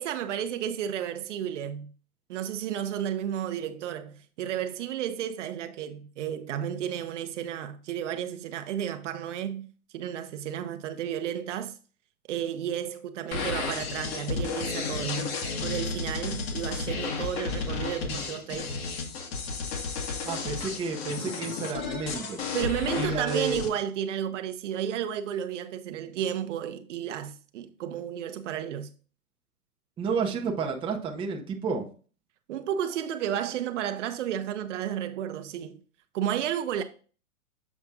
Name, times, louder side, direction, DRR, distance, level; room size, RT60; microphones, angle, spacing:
voice 1, 0.0-1.9 2.3-9.7 9.9-11.7 12.3-15.3 15.6-18.8 22.5-28.9 32.5-35.8 36.1-36.8, right 10 dB, 55° right, 0.8 m, -32 dB
sound 1, 13.3-23.7, left 4 dB, 45° left, 1.5 m, -33 dB
voice 2, 20.2-22.4 23.0-23.6 30.0-31.9, right 4 dB, 10° right, 0.7 m, -31 dB
7.3 x 4.1 x 3.6 m
hypercardioid pair, 135°, 44 cm